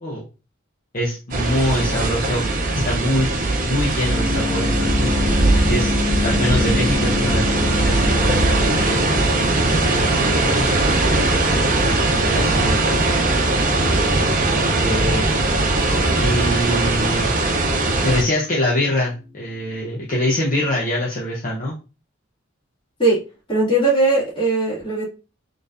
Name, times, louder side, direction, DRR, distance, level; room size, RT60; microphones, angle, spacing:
voice 1, 0.9-2.4 2.8-3.3 3.6-5.1 5.5-5.9 6.2-10.5 10.8-11.2 12.3-12.9 14.7-15.3 16.2-17.3 18.0-21.7, left 1 dB, 45° left, -4 dB, 0.9 m, -24 dB
sound 1, 1.3-18.2, right 2 dB, 45° right, 0.7 m, -19 dB
sound 2, 4.0-18.8, left 3 dB, 60° left, 2.0 m, -30 dB
voice 2, 23.5-25.0, right 2 dB, 25° left, -7 dB, 2.3 m, -19 dB
4.4 x 3.2 x 2.6 m, 0.31 s
head